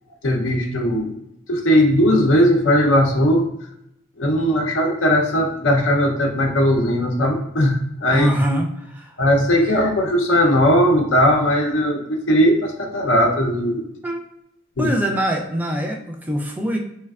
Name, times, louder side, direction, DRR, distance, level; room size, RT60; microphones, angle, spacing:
voice 1, 0.2-1.2 1.5-3.5 4.2-8.3 9.2-13.8 14.8-14.9, equal, 85° left, 2 dB, 0.6 m, -18 dB
voice 2, 8.1-9.2 14.0-14.2 14.8-16.8, equal, 10° right, 1 dB, 0.3 m, -23 dB
3.2 x 3.2 x 2.3 m, 0.78 s
head